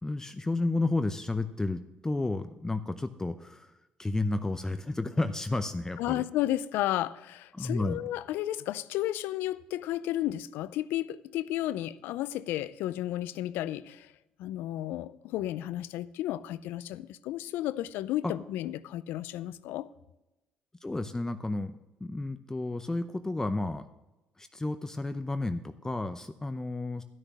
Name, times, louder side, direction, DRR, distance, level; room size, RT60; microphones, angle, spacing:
voice 1, 0.0-3.7 4.0-6.2 7.5-8.0 18.2-18.3 20.8-23.9 24.4-27.0, left 2 dB, 15° left, 0.7 m, -32 dB
voice 2, 6.0-14.1 14.4-19.9, left 14 dB, 80° left, 0.5 m, -33 dB
12.5 x 6.5 x 6.1 m
supercardioid pair, 75°, 3 cm